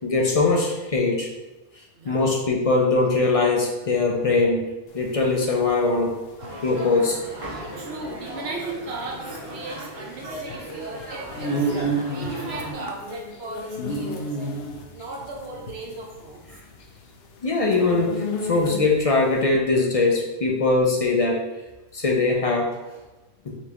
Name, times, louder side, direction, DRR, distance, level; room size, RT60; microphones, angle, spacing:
voice 1, 0.0-1.3 2.0-4.6 4.9-6.1 6.6-7.2 17.4-21.4 21.9-22.7 23.5-23.6, left 3 dB, 45° left, 0 dB, 0.5 m, -21 dB
voice 2, 2.0-2.4 7.7-11.7 12.1-14.6 14.9-16.4 22.8-23.0, right 2 dB, 80° right, -1 dB, 0.9 m, -37 dB
sound 1, 4.9-19.1, right 1 dB, 70° left, 0.8 m, -32 dB
sound 2, 6.4-12.7, right 1 dB, 35° right, 0.9 m, -36 dB
4.3 x 3.2 x 2.9 m, 1.1 s
omnidirectional pair, 1.1 m